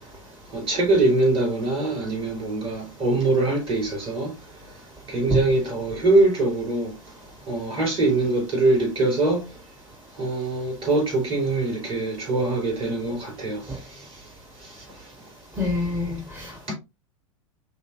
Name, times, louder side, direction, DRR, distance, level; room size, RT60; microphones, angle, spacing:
voice 1, 0.5-4.3 5.1-6.9 7.5-9.4 10.2-13.6 16.7-16.8, right 2 dB, 30° right, 3.1 m, -23 dB
voice 2, 15.6-16.7, left 1 dB, 15° right, 1.0 m, -26 dB
5.5 x 3.6 x 2.4 m
figure-of-eight pair, 90°, 17 cm